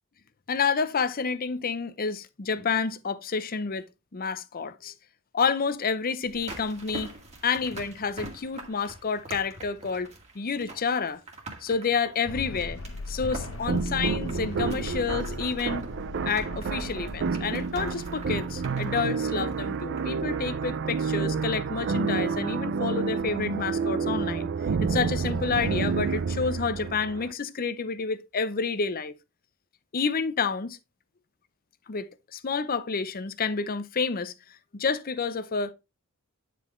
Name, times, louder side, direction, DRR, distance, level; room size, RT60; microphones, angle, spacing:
voice 1, 0.5-3.8 4.1-4.9 5.3-7.1 7.4-10.1 10.3-11.2 11.6-12.8 13.1-15.9 16.3-24.5 24.8-29.1 29.9-30.8 31.9-34.3 34.7-35.7, left 5 dB, 40° left, 0.6 m, -29 dB
sound 1, 6.2-20.2 20.5-20.6, right 2 dB, 30° right, 2.0 m, -45 dB
sound 2, 12.3-19.1, left 3 dB, 60° left, 1.0 m, -39 dB
sound 3, 13.7-27.3, right 5 dB, 55° right, 0.4 m, -29 dB
9.6 x 5.1 x 3.1 m
head